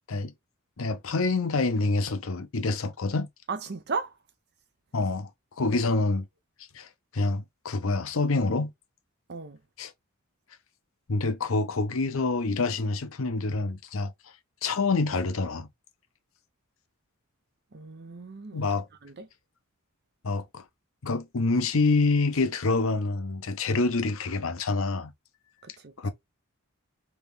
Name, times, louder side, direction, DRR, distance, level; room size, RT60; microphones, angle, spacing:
voice 1, 0.8-3.3 4.9-5.3 5.6-6.3 6.7-6.9 7.1-8.7 9.8-9.9 11.1-14.1 14.6-15.7 18.5-18.9 20.2-20.6 21.0-25.1 26.0-26.1, left 3 dB, 70° left, 0.7 m, -26 dB
voice 2, 3.5-4.2 5.7-5.8 9.3-9.6 17.7-18.6 19.0-19.3 25.6-25.9, right 4 dB, 55° right, 0.8 m, -36 dB
3.5 x 2.9 x 3.4 m
head